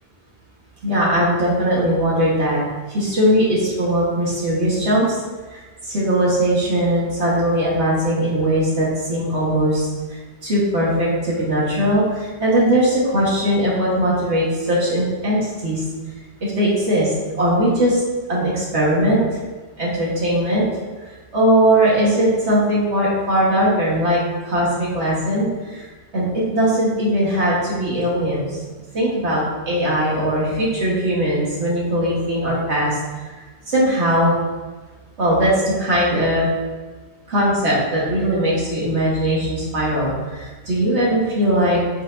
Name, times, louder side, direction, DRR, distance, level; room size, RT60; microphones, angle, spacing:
voice 1, 0.8-2.6 2.9-5.2 5.5-15.8 16.4-17.1 17.4-18.0 18.3-19.2 19.8-20.7 21.3-25.9 26.1-28.6 28.9-33.0 33.7-34.4 35.2-36.5 37.3-41.8, right 1 dB, 75° right, -6 dB, 2.2 m, -19 dB
8.2 x 5.9 x 2.9 m, 1.3 s
omnidirectional pair, 1.2 m